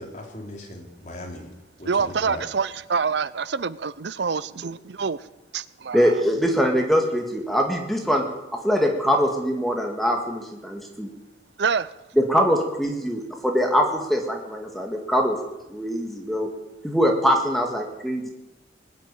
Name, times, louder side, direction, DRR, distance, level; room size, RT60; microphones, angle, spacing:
voice 1, 0.0-1.5 1.8-2.4, left 1 dB, 40° left, 3.1 m, -38 dB
voice 2, 1.9-5.2 5.5-6.1 11.6-11.9, right 5 dB, 70° right, 0.6 m, -26 dB
voice 3, 5.9-8.2 8.6-11.1 12.2-15.4 15.7-16.5 16.8-18.3, equal, ahead, 1.8 m, -23 dB
20.0 x 7.6 x 9.1 m
head